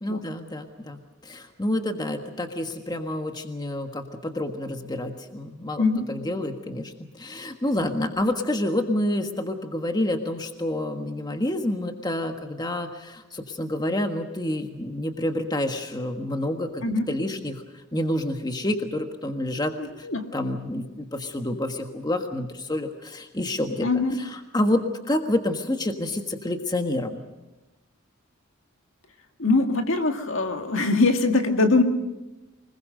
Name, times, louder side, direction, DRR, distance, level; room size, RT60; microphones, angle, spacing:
voice 1, 0.0-17.6 17.9-20.1 20.3-23.9 24.5-27.2, left 1 dB, 20° left, 5 dB, 1.5 m, -28 dB
voice 2, 19.8-20.3 23.8-24.2 29.4-31.8, left 3 dB, 65° left, 5 dB, 1.9 m, -22 dB
25.0 x 21.0 x 6.6 m, 1.0 s
head